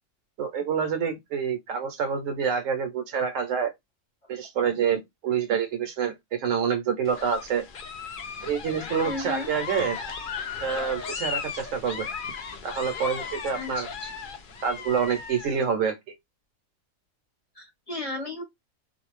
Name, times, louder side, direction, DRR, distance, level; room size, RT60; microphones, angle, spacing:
voice 1, 0.4-3.7 4.3-7.6 8.4-10.0 10.6-12.1 12.6-13.9 14.6-16.0, right 7 dB, 65° right, 1.0 m, -27 dB
sound 1, 7.0-15.6, left 6 dB, 70° left, 0.5 m, -36 dB
voice 2, 9.0-9.5 13.5-14.1 17.6-18.4, left 2 dB, 35° left, 0.7 m, -34 dB
2.5 x 2.2 x 3.1 m
omnidirectional pair, 1.5 m